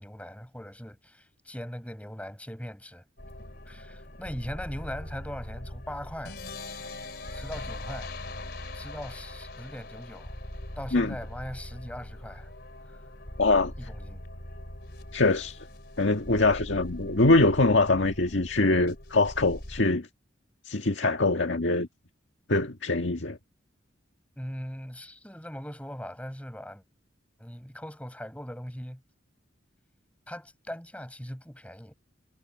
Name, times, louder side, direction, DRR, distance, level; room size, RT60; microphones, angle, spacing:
voice 1, 0.0-3.0 3.7-6.4 6.7-6.9 7.3-8.1 8.7-10.3 10.8-12.5 12.9-13.0 13.8-14.3 24.4-26.8 27.4-29.0 30.3-31.9, equal, 5° left, 5.2 m, -40 dB
sound 1, 3.2-19.8, left 1 dB, 55° left, 4.1 m, -41 dB
voice 2, 13.4-13.7 15.1-15.6 16.0-20.1 20.7-21.9 22.5-23.4, left 2 dB, 75° left, 1.7 m, -23 dB
head